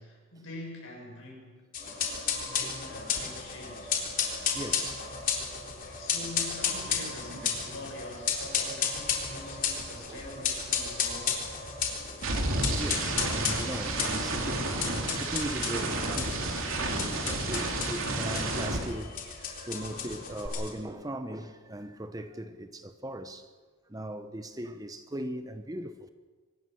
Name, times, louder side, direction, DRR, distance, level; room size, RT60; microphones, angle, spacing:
voice 1, 0.0-4.0 5.6-11.6 17.0-17.6 19.9-20.1, left 1 dB, 65° left, 7.4 m, -45 dB
sound 1, 1.7-20.7, left 7 dB, 40° left, 3.8 m, -33 dB
sound 2, 3.2-3.4 3.6-8.0 8.3-19.6 19.8-20.5, right 2 dB, 65° right, 3.2 m, -33 dB
voice 2, 4.4-5.1 10.1-10.3 12.4-12.5 12.8-16.5 16.8-19.2 19.6-23.5 23.9-26.1, right 1 dB, 15° right, 0.9 m, -39 dB
24.5 x 19.5 x 6.4 m
head